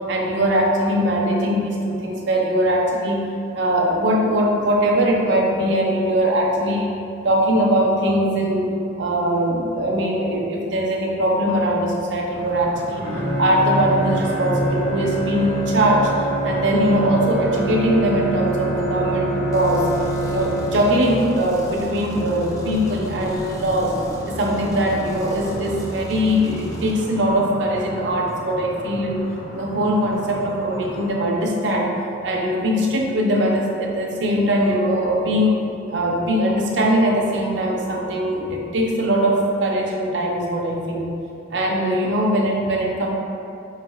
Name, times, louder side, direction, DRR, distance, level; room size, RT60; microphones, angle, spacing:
voice 1, 0.1-3.3 3.5-7.0 7.2-13.1 13.4-16.1 16.4-19.9 20.3-23.9 24.3-32.0 32.2-35.6 35.9-41.1 41.5-43.1, equal, 70° right, 0 dB, 0.5 m, -21 dB
sound 1, 12.3-31.1, equal, 85° left, 0.9 m, -35 dB
Bowed string instrument, 13.0-21.3, right 1 dB, 40° left, 1.1 m, -25 dB
sound 2, 19.5-26.9, equal, 15° left, 0.3 m, -38 dB
4.7 x 3.4 x 2.2 m, 2.7 s
head